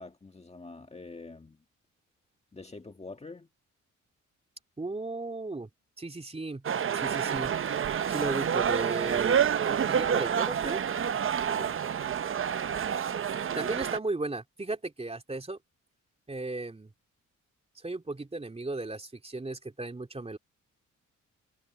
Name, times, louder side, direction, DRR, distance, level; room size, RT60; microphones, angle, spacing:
voice 1, 0.0-1.6 2.5-3.5 11.6-11.8, left 3 dB, 20° left, 1.8 m, -45 dB
voice 2, 4.8-5.7 6.0-6.6 6.9-9.4 9.6-10.8 13.5-15.6 16.3-16.9 17.7-20.4, right 2 dB, 20° right, 3.2 m, -35 dB
sound 1, 6.6-14.0, right 8 dB, 40° right, 0.7 m, -28 dB
cardioid pair, 95°, 31 cm